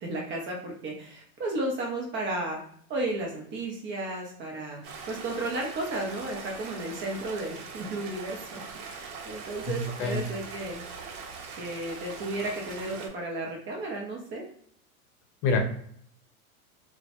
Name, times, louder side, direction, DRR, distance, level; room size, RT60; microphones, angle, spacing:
voice 1, 0.0-2.6 2.9-8.6 8.9-10.8 11.6-14.4, right 2 dB, 30° right, 0 dB, 0.4 m, -33 dB
Stream, 4.8-13.1, right 5 dB, 80° right, 0.7 m, -42 dB
voice 2, 9.7-10.2 15.4-15.6, left 3 dB, 50° left, 4 dB, 0.7 m, -26 dB
2.1 x 2.1 x 2.8 m, 0.63 s
hypercardioid pair, 110°, 43 cm